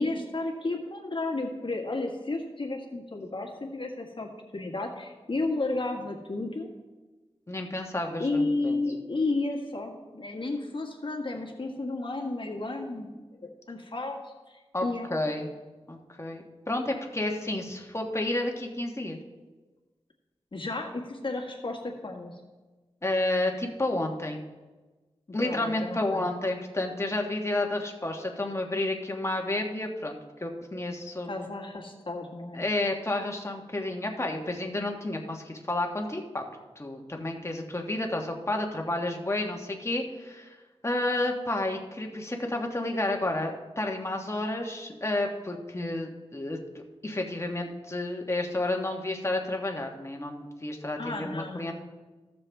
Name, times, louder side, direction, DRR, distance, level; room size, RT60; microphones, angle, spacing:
voice 1, 0.0-6.7 8.2-14.2 14.5-15.1 20.5-22.3 25.4-26.2 31.3-32.6 51.0-51.7, left 2 dB, 50° left, 0 dB, 1.6 m, -32 dB
voice 2, 7.5-8.8 14.7-14.8 15.1-15.5 15.9-19.2 23.0-24.4 25.3-31.3 32.5-36.4 36.8-40.6 40.8-46.6 47.0-51.7, left 2 dB, 25° left, 2 dB, 1.3 m, -31 dB
14.5 x 6.8 x 3.4 m, 1.2 s
wide cardioid pair, 70°, 11 cm